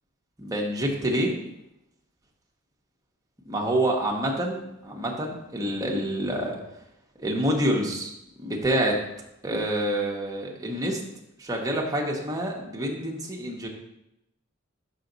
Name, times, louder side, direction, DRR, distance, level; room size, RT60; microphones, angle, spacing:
voice 1, 0.4-1.4 3.5-6.6 7.2-8.1 8.4-9.0 9.4-11.0 11.4-13.7, right 1 dB, 15° right, -1 dB, 1.0 m, -27 dB
5.8 x 5.7 x 3.9 m, 0.87 s
head